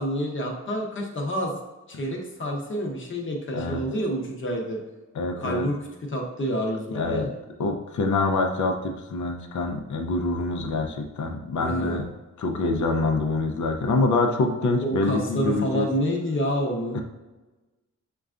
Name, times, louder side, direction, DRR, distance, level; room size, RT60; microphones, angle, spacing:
voice 1, 0.0-1.5 1.9-4.8 5.4-5.8 6.1-7.3 11.6-12.0 14.8-17.0, equal, 40° left, 0 dB, 0.8 m, -28 dB
voice 2, 5.1-5.7 6.9-7.3 7.6-12.1 12.4-15.9 16.9-17.0, left 3 dB, 75° left, 4 dB, 0.6 m, -25 dB
6.5 x 2.3 x 2.4 m, 1.1 s
wide cardioid pair, 140°, 30 cm